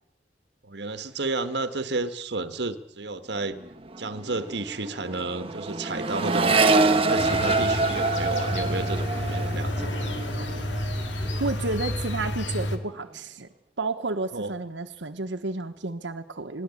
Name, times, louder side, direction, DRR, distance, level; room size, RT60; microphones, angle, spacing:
voice 1, 0.6-3.6 4.0-9.9 14.3-14.5, right 3 dB, 70° right, 11 dB, 1.3 m, -32 dB
Accelerating revving vroom, 3.4-3.7 3.9-11.5 11.8-12.4, right 3 dB, 30° right, 1.2 m, -26 dB
sound 1, 7.2-12.8, left 1 dB, 85° left, 2.2 m, -30 dB
voice 2, 11.4-13.5 13.8-16.6, right 3 dB, 85° right, 6 dB, 1.2 m, -31 dB
21.5 x 16.5 x 8.4 m, 0.77 s
head